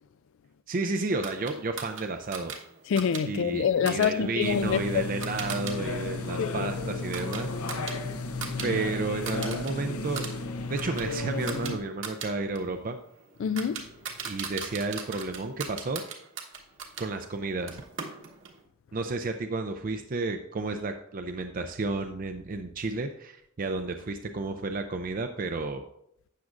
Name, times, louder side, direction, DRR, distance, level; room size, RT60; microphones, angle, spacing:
voice 1, 0.7-2.5 3.3-7.5 8.6-10.3 10.6-13.0 14.2-16.0 17.0-17.8 18.9-25.8, right 3 dB, 40° right, 0.4 m, -32 dB
sound 1, 1.2-5.8 6.1-8.7 9.0-9.7 10.0-17.1 17.7-18.6, right 6 dB, 60° right, 1.2 m, -40 dB
voice 2, 2.9-4.8 6.4-6.7 8.0-8.7 13.4-13.9, left 7 dB, 60° left, 0.3 m, -27 dB
sound 2, 4.4-11.8, left 2 dB, 85° left, 0.9 m, -34 dB
12.0 x 8.3 x 2.5 m
head